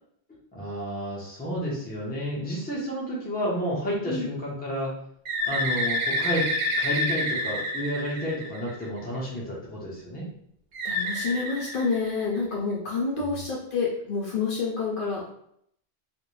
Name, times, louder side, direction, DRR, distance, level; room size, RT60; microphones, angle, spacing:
voice 1, 0.5-4.9 5.4-6.5 6.8-10.3 13.2-13.4, equal, 10° left, -5 dB, 0.6 m, -31 dB
Bird, 5.2-9.0 10.7-12.5, left 1 dB, 65° right, 0.6 m, -28 dB
voice 2, 10.8-15.2, left 4 dB, 60° left, -3 dB, 0.6 m, -28 dB
2.5 x 2.0 x 3.0 m, 0.71 s
omnidirectional pair, 1.1 m